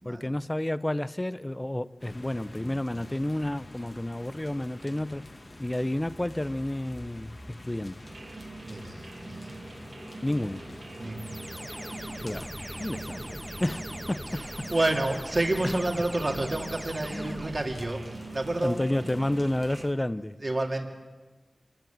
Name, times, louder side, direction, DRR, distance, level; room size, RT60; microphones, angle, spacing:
voice 1, 0.0-5.3 5.6-8.0 10.2-10.7 12.2-12.5 12.8-14.7 17.1-17.4 18.6-20.4, left 1 dB, 20° left, 0.7 m, -31 dB
sound 1, 2.0-19.9, left 1 dB, 40° left, 2.2 m, -46 dB
sound 2, 8.0-19.9, right 3 dB, 75° right, 1.7 m, -44 dB
voice 2, 8.6-9.6 11.0-11.7 12.0-12.1 14.3-18.8 20.4-20.9, right 2 dB, 40° right, 2.6 m, -30 dB
sound 3, 11.2-18.0, equal, ahead, 2.0 m, -41 dB
26.5 x 17.0 x 9.1 m
wide cardioid pair, 65°, 0 cm